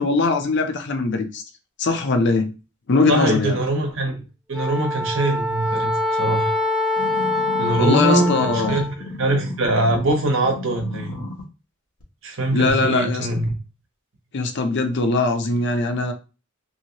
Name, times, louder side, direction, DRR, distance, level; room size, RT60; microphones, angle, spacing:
voice 1, 0.0-1.4 1.8-2.5 2.9-3.6 7.7-8.8 12.5-13.3 14.3-16.1, left 3 dB, 55° left, 0.5 m, -21 dB
voice 2, 3.1-4.2 4.5-6.5 7.6-11.2 12.2-13.5, right 1 dB, 65° right, 0.9 m, -22 dB
Wind instrument woodwind instrument, 4.5-8.9, left 2 dB, 5° right, 0.3 m, -24 dB
sound 1, 7.0-10.1 10.4-11.4 12.0-12.1, left 2 dB, 85° left, 1.0 m, -33 dB
2.8 x 2.7 x 2.8 m
head